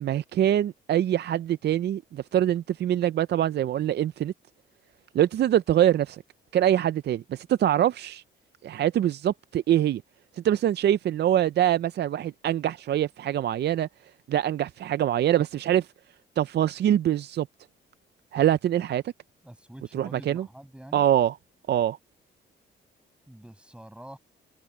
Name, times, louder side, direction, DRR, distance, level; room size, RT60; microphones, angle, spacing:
voice 1, 0.0-4.3 5.1-6.2 6.5-8.2 8.6-10.0 10.3-13.9 14.3-15.9 16.4-17.5 18.3-19.0 19.9-20.5 20.9-21.4 21.7-22.0, right 11 dB, 60° right, 0.6 m, -24 dB
voice 2, 19.4-21.1 23.3-24.2, right 1 dB, 5° right, 7.3 m, -46 dB
cardioid pair, 90°, 20 cm